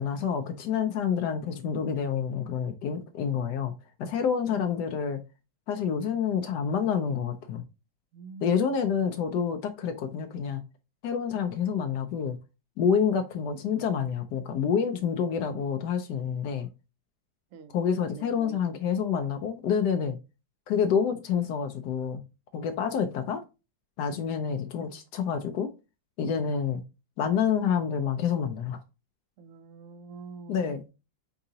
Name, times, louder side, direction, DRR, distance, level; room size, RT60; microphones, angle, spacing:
voice 1, 0.0-3.7 4.0-5.2 5.7-7.6 8.4-10.6 11.0-12.4 12.8-16.7 17.7-20.2 20.7-22.2 22.5-23.4 24.0-25.7 26.2-26.8 27.2-28.8 30.5-30.8, left 7 dB, 85° left, 1.2 m, -28 dB
voice 2, 8.1-8.7 15.0-15.1 17.5-17.7 18.0-18.6 24.2-24.3 29.4-30.9, right 5 dB, 65° right, 0.8 m, -46 dB
4.7 x 3.9 x 2.7 m
omnidirectional pair, 1.8 m